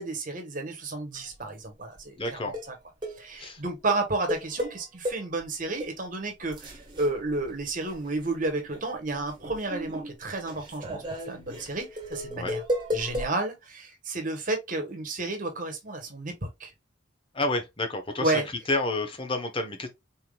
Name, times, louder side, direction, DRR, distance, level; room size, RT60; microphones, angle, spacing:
voice 1, 0.0-2.5 3.2-12.6 12.9-16.7 18.2-18.5, right 2 dB, 45° right, 1.3 m, -31 dB
sound 1, 1.1-1.4 2.0-2.1 2.5-2.7 3.0-3.2 3.9-5.4 5.8-5.9 6.4-8.3 8.6-13.3, equal, 25° right, 1.5 m, -35 dB
voice 2, 2.2-2.5 3.4-3.6 12.3-12.6 17.3-18.4 18.7-19.9, left 2 dB, 25° left, 0.9 m, -29 dB
4.4 x 3.6 x 2.3 m
head